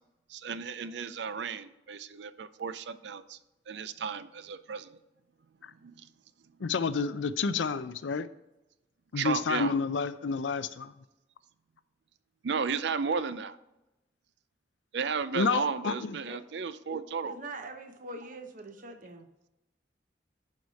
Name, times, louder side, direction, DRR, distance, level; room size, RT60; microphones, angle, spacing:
voice 1, 0.3-3.4 3.7-5.0 5.8-6.1 9.2-9.7 12.4-13.6 14.9-17.4, right 5 dB, 70° right, 14 dB, 0.5 m, -34 dB
voice 2, 6.6-8.3 9.1-10.9 15.3-16.2, left 5 dB, 85° left, 14 dB, 0.5 m, -29 dB
voice 3, 17.2-19.3, right 2 dB, 45° right, 7 dB, 0.9 m, -43 dB
10.5 x 4.9 x 4.1 m, 0.95 s
head